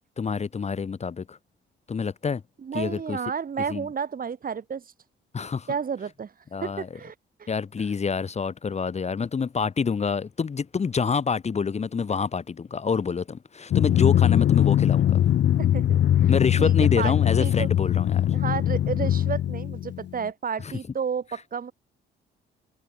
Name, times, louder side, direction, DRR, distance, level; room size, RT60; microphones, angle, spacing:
voice 1, 0.2-1.4 1.9-2.4 2.7-3.2 3.7-3.9 5.3-5.7 6.5-6.9 7.5-15.2 16.3-18.3 20.6-20.7, left 5 dB, 35° left, 1.3 m, -27 dB
voice 2, 2.6-4.8 5.7-6.3 6.6-7.1 7.4-7.5 15.6-16.3 16.6-17.1 17.4-17.7 18.3-21.7, right 6 dB, 45° right, 5.8 m, -31 dB
Drum, 13.7-20.2, left 11 dB, 60° left, 0.9 m, -21 dB
cardioid pair, 90°, 20 cm